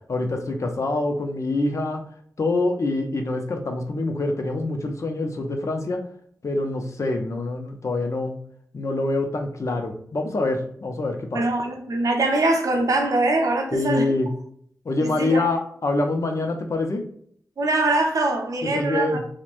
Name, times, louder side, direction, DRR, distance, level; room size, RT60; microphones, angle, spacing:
voice 1, 0.1-2.0 2.4-6.0 6.4-8.3 8.7-11.4 13.7-14.3 14.8-17.0 18.6-19.2, left 2 dB, 55° left, 0.6 m, -25 dB
voice 2, 11.3-14.1 15.0-15.5 17.6-19.2, right 2 dB, 65° right, 0.6 m, -23 dB
3.0 x 2.1 x 2.5 m
cardioid pair, 50°, 6 cm